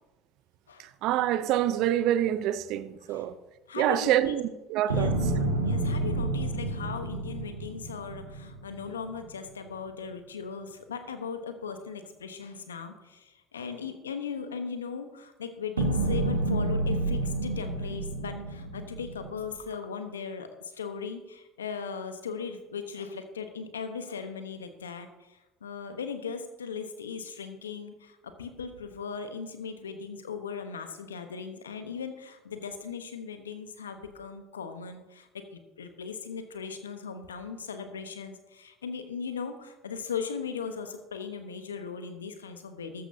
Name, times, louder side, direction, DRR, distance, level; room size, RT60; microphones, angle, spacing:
voice 1, 0.8-3.3 3.8-5.2, right 12 dB, 60° right, 0.7 m, -26 dB
voice 2, 3.7-4.3 4.9-5.1 5.6-43.1, left 6 dB, 90° left, 1.1 m, -38 dB
sound 1, 4.9-9.2 15.8-19.5, right 2 dB, 85° right, 1.7 m, -30 dB
14.0 x 13.5 x 2.8 m
hypercardioid pair, 65°, 0 cm